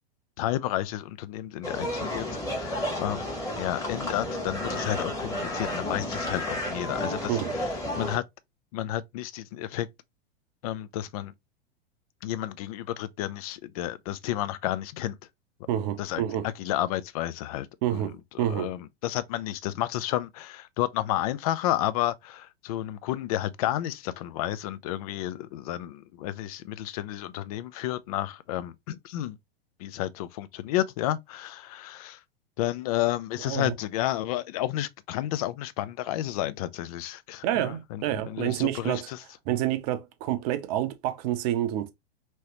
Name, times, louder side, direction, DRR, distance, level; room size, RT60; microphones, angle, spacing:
voice 1, 0.4-3.3 3.6-8.2 8.7-9.9 10.6-11.3 12.2-15.2 16.0-17.7 17.9-29.4 29.8-32.2 32.6-39.2, left 13 dB, 40° left, 0.4 m, -31 dB
sound 1, 1.6-8.2, left 1 dB, 10° left, 1.3 m, -32 dB
voice 2, 15.7-16.5 17.8-18.7 33.5-33.7 37.4-39.1 39.5-41.9, right 12 dB, 40° right, 0.6 m, -28 dB
3.0 x 2.9 x 2.9 m
figure-of-eight pair, 95°, 31 cm